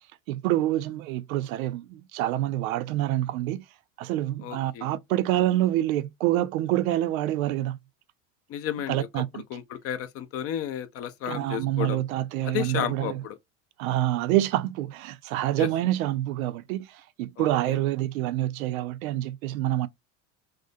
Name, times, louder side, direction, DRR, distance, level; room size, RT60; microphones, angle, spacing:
voice 1, 0.3-3.6 4.0-7.8 8.9-9.4 11.3-13.2 13.8-19.9, right 14 dB, 80° right, 0.5 m, -27 dB
voice 2, 4.4-4.9 8.5-9.1 9.3-12.0 12.4-13.4 15.6-15.7 17.4-17.8, left 10 dB, 35° left, 0.4 m, -33 dB
2.4 x 2.1 x 2.5 m
supercardioid pair, 105°, 41 cm